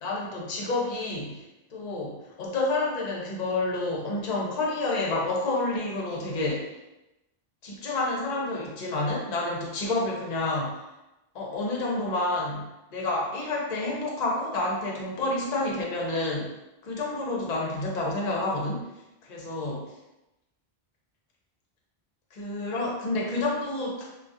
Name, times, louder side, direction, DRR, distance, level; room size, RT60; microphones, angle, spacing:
voice 1, 0.0-6.6 7.6-10.8 11.3-16.5 16.8-18.9 19.2-19.8 22.3-24.1, left 2 dB, 50° left, -2 dB, 0.6 m, -29 dB
2.3 x 2.2 x 2.6 m, 0.97 s
omnidirectional pair, 1.1 m